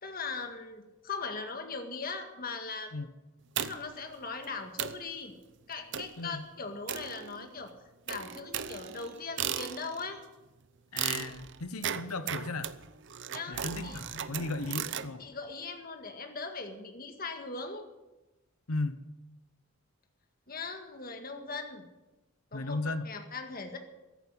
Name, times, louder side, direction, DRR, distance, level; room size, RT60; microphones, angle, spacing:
voice 1, 0.0-2.9 3.6-5.3 5.7-7.7 8.1-10.2 13.3-14.0 15.2-17.9 20.5-21.9 22.5-23.8, left 4 dB, 40° left, 5 dB, 1.9 m, -40 dB
sound 1, 3.6-4.0 4.4-4.5 4.8-5.1 5.9-6.2 6.9-7.6 8.1-10.1 11.0-15.1, right 9 dB, 55° right, 0.7 m, -36 dB
sound 2, 8.4-10.2 11.1-12.6 13.2-15.4, right 2 dB, 35° right, 4.8 m, -54 dB
voice 2, 10.9-12.7 13.5-15.2 18.7-19.0 22.5-23.1, left 2 dB, 85° left, 12 dB, 1.0 m, -36 dB
sound 3, 14.1-15.8, right 1 dB, 70° right, 2.1 m, -56 dB
14.5 x 10.5 x 8.3 m, 1.0 s
head